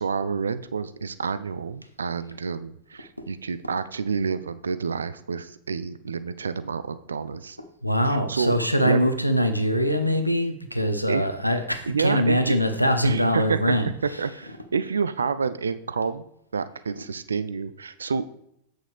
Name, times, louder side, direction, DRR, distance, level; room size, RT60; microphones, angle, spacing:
voice 1, 0.0-7.6 8.0-8.6 8.9-9.1 11.1-11.3 11.8-12.6 13.0-13.8 14.0-16.2 16.5-18.3, right 5 dB, 70° right, 13 dB, 0.4 m, -28 dB
voice 2, 7.8-14.5 14.8-14.9 16.9-17.0, equal, 90° left, 8 dB, 0.8 m, -23 dB
8.5 x 6.4 x 3.4 m, 0.72 s
figure-of-eight pair, 90°, 0 cm